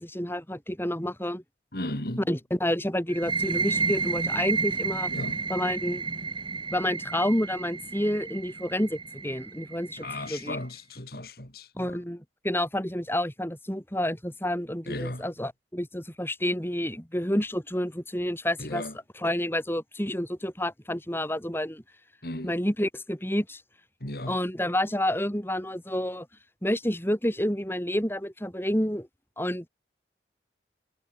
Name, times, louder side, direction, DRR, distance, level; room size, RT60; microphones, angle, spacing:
voice 1, 0.0-1.4 2.3-5.1 5.5-6.0 6.7-10.6 11.8-18.8 19.2-21.8 22.4-23.6 24.3-26.3 26.6-29.1 29.4-29.7, left 1 dB, 15° left, 6.8 m, -29 dB
voice 2, 1.7-2.2 5.1-5.4 10.0-12.0 14.9-15.2 18.6-18.9 22.2-22.5 24.0-24.4, left 1 dB, 60° left, 4.2 m, -35 dB
sound 1, 3.1-10.5, right 4 dB, 25° right, 2.7 m, -31 dB
head